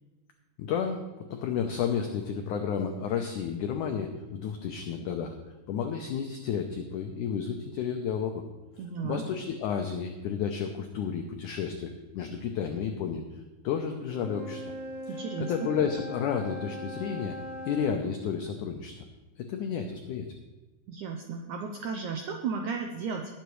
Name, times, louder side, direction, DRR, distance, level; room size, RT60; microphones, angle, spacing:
voice 1, 0.6-5.4 5.7-8.4 9.0-14.7 15.1-17.4 17.7-19.0 19.4-20.3, left 7 dB, 75° left, 4 dB, 1.8 m, -32 dB
voice 2, 8.8-9.2 15.1-15.5 20.9-23.4, right 5 dB, 85° right, 3 dB, 1.7 m, -34 dB
Wind instrument woodwind instrument, 14.0-18.0, equal, 60° right, 4.9 m, -40 dB
19.0 x 8.0 x 3.2 m, 1.2 s
omnidirectional pair, 4.4 m